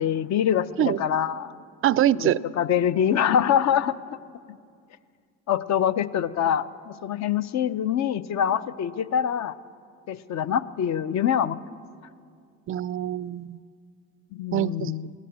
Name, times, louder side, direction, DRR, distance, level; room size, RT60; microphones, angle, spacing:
voice 1, 0.0-1.5 2.1-4.0 5.5-9.5 10.1-11.6 14.3-15.1, left 9 dB, 45° left, 14 dB, 0.6 m, -25 dB
voice 2, 1.8-2.4 12.7-13.6 14.5-14.9, right 12 dB, 35° right, 19 dB, 0.4 m, -24 dB
14.5 x 10.5 x 8.1 m, 2.2 s
supercardioid pair, 80°, 37 cm